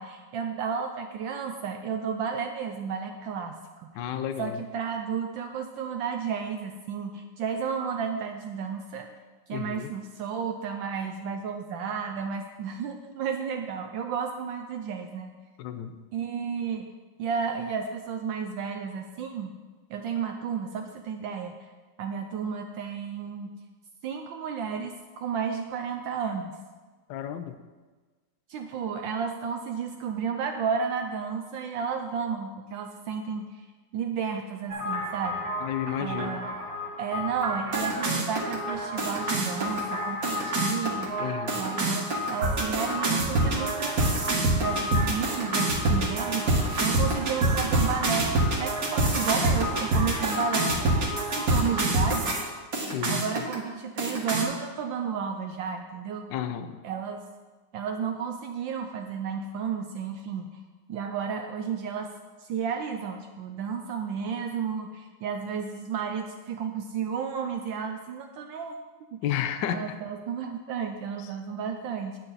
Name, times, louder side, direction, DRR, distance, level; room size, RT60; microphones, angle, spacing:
voice 1, 0.0-3.9 4.4-9.1 9.5-15.3 16.1-16.9 17.2-19.5 19.9-21.5 22.0-23.5 24.0-26.5 28.5-33.6 33.9-35.4 36.0-36.5 37.0-41.2 41.5-43.9 44.6-46.5 46.8-52.4 53.1-56.3 56.8-57.2 57.7-60.5 60.9-62.1 62.4-68.7 69.1-69.2 69.7-72.2, right 6 dB, 75° right, 4 dB, 1.3 m, -32 dB
voice 2, 3.9-4.6 9.5-9.9 15.6-16.0 27.1-27.6 35.6-36.4 41.2-41.6 52.7-53.5 56.3-56.8 69.2-69.9 71.2-71.3, left 10 dB, 70° left, 9 dB, 1.2 m, -32 dB
sound 1, 34.7-52.4 52.7-53.5 54.0-54.4, right 1 dB, 45° right, 2.0 m, -27 dB
9.3 x 8.9 x 4.1 m, 1.3 s
omnidirectional pair, 2.2 m